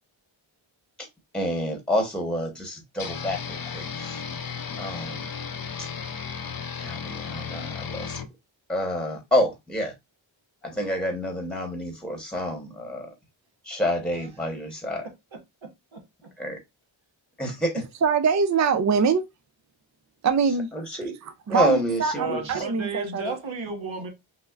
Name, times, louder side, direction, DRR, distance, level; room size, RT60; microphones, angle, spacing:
voice 1, 1.3-4.2 4.5-5.3 5.8-5.9 6.8-8.2 8.7-9.9 10.6-13.1 13.6-15.1 16.4-16.6 17.4-17.8 20.7-21.2 21.5-22.4, equal, ahead, 1.1 m, -28 dB
sound 1, 3.0-8.3, left 6 dB, 45° left, 0.6 m, -34 dB
voice 2, 15.9-16.3 22.1-24.1, right 3 dB, 70° right, 1.3 m, -33 dB
voice 3, 18.0-19.3 20.2-20.7 21.5-23.4, right 6 dB, 40° right, 0.4 m, -23 dB
5.6 x 2.0 x 2.4 m
wide cardioid pair, 55°, 48 cm